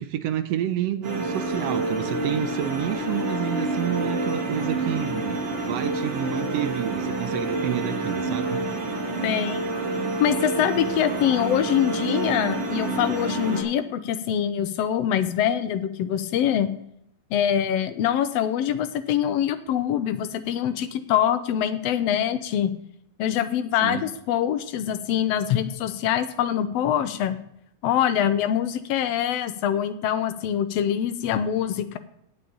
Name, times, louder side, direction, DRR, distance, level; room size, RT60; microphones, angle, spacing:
voice 1, 0.0-5.4 5.7-8.6 23.8-24.0, right 11 dB, 75° right, 10 dB, 1.6 m, -29 dB
sound 1, 1.0-13.6, right 2 dB, 50° right, 2.8 m, -28 dB
voice 2, 9.2-9.7 10.2-16.7 17.3-22.7 23.2-27.4 27.8-32.0, left 10 dB, 75° left, 11 dB, 1.6 m, -24 dB
8.7 x 6.8 x 8.7 m, 0.73 s
omnidirectional pair, 3.4 m